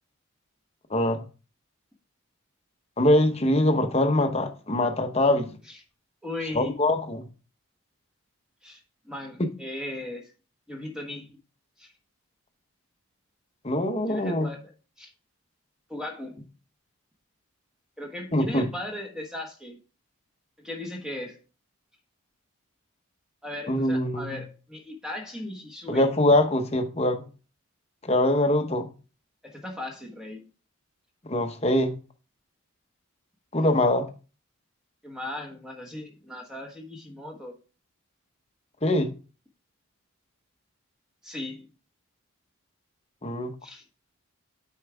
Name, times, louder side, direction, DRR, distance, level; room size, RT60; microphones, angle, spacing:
voice 1, 0.9-1.2 3.0-5.6 6.5-7.3 13.6-14.5 18.3-18.7 23.7-24.4 25.9-27.2 28.0-28.9 31.3-31.9 33.5-34.1 38.8-39.1 43.2-43.5, left 1 dB, 30° left, 0.9 m, -23 dB
voice 2, 6.2-6.7 8.6-10.3 10.7-11.3 11.8-11.9 14.1-14.7 15.0-15.1 15.9-16.4 18.0-19.8 20.6-21.4 23.4-26.1 29.4-30.5 35.0-37.5 41.2-41.7 43.6-43.8, left 1 dB, 5° right, 1.2 m, -37 dB
8.8 x 4.7 x 3.5 m
head